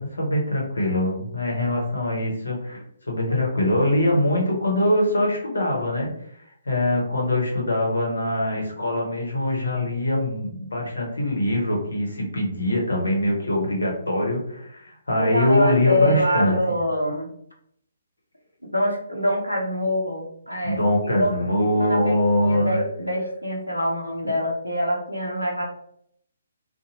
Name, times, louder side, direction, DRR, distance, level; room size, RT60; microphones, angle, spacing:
voice 1, 0.0-6.1 6.7-16.5 20.6-22.8, left 1 dB, 70° left, -1 dB, 1.0 m, -23 dB
voice 2, 15.2-17.3 18.7-20.8 21.2-21.3 21.8-25.6, left 1 dB, 90° left, -1 dB, 0.7 m, -25 dB
2.6 x 2.2 x 2.9 m, 0.69 s
figure-of-eight pair, 135°, 0 cm